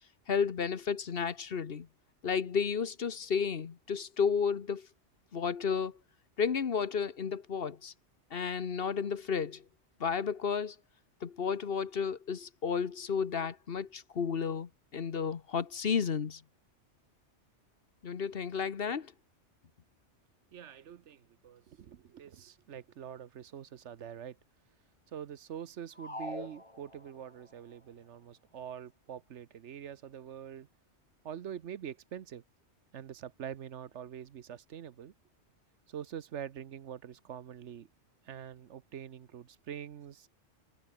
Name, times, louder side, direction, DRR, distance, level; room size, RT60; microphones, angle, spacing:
voice 1, 0.3-1.9 2.2-4.9 5.3-5.9 6.4-7.9 8.3-9.6 10.0-10.7 11.2-16.4 18.0-19.1, left 6 dB, 55° left, 1.2 m, -32 dB
voice 2, 20.5-24.4 25.1-30.7 31.2-32.4 32.9-35.1 35.9-37.9 38.2-40.3, right 9 dB, 75° right, 1.2 m, -45 dB
sound 1, 26.0-27.4, left 1 dB, 25° left, 3.3 m, -43 dB
omnidirectional pair, 1.2 m